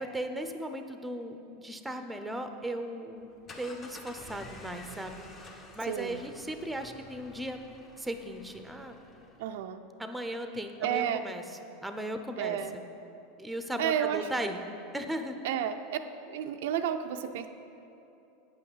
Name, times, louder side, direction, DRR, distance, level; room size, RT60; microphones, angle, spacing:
voice 1, 0.0-3.3 3.6-7.6 8.0-9.0 10.0-11.4 11.8-12.6 13.4-14.6 14.9-15.4, right 1 dB, 5° right, 7 dB, 0.7 m, -37 dB
sound 1, 3.2-9.6, left 2 dB, 30° left, 1.2 m, -50 dB
voice 2, 5.8-6.2 9.4-9.8 10.8-11.2 12.4-12.8 13.8-14.3 15.4-16.0 16.3-17.5, right 9 dB, 75° right, 7 dB, 0.4 m, -31 dB
8.7 x 5.6 x 7.2 m, 2.9 s
supercardioid pair, 115°, 0 cm